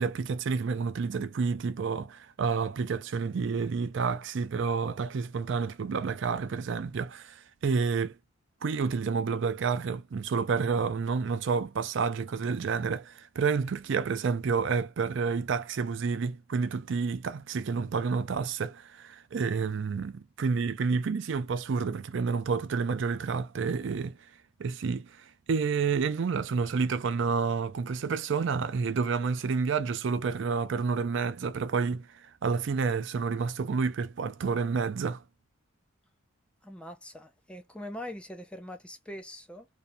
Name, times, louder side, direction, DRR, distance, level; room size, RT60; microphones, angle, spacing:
voice 1, 0.0-8.2 8.6-24.2 24.6-35.2, right 5 dB, 60° right, 0.4 m, -29 dB
voice 2, 36.6-39.7, left 1 dB, 5° left, 0.4 m, -42 dB
2.7 x 2.3 x 2.5 m
head